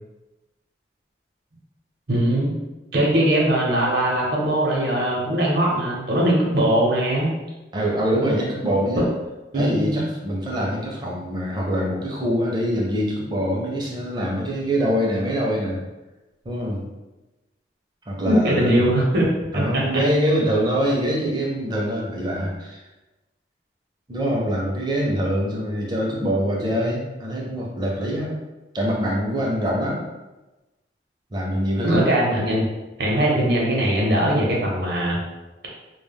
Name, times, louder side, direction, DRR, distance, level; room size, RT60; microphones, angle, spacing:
voice 1, 2.1-2.5 2.9-7.3 9.5-10.1 18.2-19.3 19.7-19.8 31.8-32.7 33.0-35.2, right 1 dB, 55° right, -3 dB, 0.7 m, -20 dB
voice 2, 7.7-9.1 9.5-15.8 16.4-16.8 18.1-18.9 19.5-22.8 24.1-28.4 28.7-30.0 31.3-32.1, equal, 25° right, -3 dB, 0.5 m, -24 dB
2.2 x 2.0 x 3.4 m, 1.1 s
head